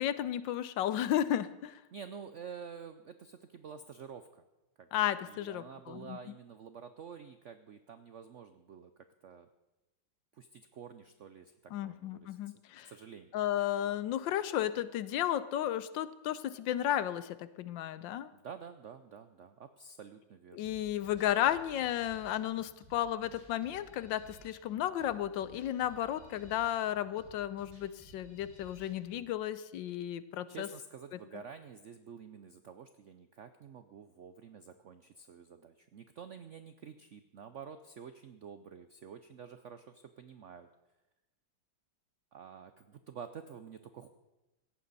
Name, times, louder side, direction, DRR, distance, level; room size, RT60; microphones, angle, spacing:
voice 1, 0.0-1.8 4.9-6.2 11.7-12.9 13.3-18.3 20.5-30.7 31.1-31.2, left 11 dB, 80° left, 15 dB, 1.4 m, -33 dB
voice 2, 1.9-4.4 4.8-4.9 5.3-8.9 9.2-9.5 10.3-12.4 12.8-13.3 18.3-20.7 30.5-40.7 42.3-44.1, right 6 dB, 75° right, 10 dB, 0.6 m, -49 dB
sound 1, 20.6-29.2, right 2 dB, 15° left, 4.4 m, -58 dB
17.5 x 14.5 x 4.1 m, 1.0 s
omnidirectional pair, 2.1 m